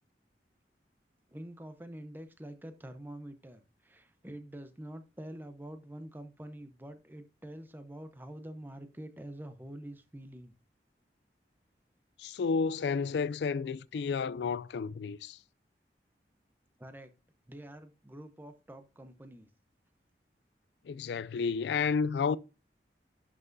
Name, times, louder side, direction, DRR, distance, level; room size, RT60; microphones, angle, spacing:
voice 1, 1.3-10.5 16.8-17.1 17.5-19.5, right 1 dB, 10° right, 0.7 m, -46 dB
voice 2, 12.2-15.4 20.9-22.4, left 5 dB, 75° left, 0.3 m, -31 dB
11.0 x 5.8 x 2.6 m
head